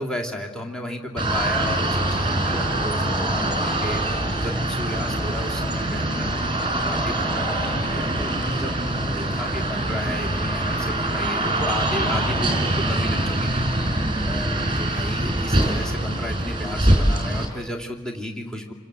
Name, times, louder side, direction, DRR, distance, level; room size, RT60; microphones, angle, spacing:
voice 1, 0.0-4.0 4.4-6.3 6.8-18.7, left 1 dB, 5° left, 3 dB, 2.9 m, -33 dB
sound 1, 1.2-17.5, right 1 dB, 20° right, 4.3 m, -24 dB
28.0 x 25.5 x 7.8 m, 1.3 s
head